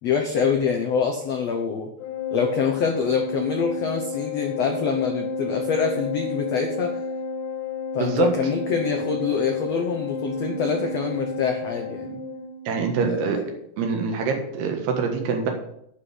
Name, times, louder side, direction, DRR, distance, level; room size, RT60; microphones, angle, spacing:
voice 1, 0.0-1.9 2.3-7.0 7.9-12.2 13.1-13.4, left 6 dB, 90° left, 3 dB, 1.4 m, -25 dB
Organ, 2.0-12.7, left 3 dB, 65° left, 2.3 m, -31 dB
voice 2, 12.7-13.4 13.8-15.5, right 5 dB, 85° right, 3 dB, 3.6 m, -24 dB
9.7 x 5.7 x 8.1 m, 0.74 s
omnidirectional pair, 4.5 m